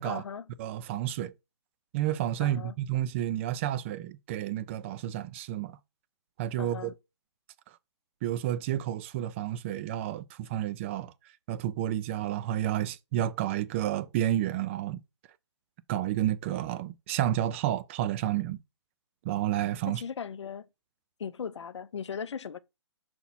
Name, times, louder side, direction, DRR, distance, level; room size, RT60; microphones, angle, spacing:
voice 1, 0.0-0.5 2.4-2.7 6.6-6.9 19.9-20.7 21.2-22.6, left 7 dB, 75° left, 0.6 m, -38 dB
voice 2, 0.6-1.3 1.9-5.8 6.4-6.9 8.2-11.1 11.5-15.0 15.9-18.6 19.2-20.0, right 12 dB, 25° right, 0.4 m, -30 dB
5.9 x 4.3 x 4.1 m
hypercardioid pair, 140°, 15 cm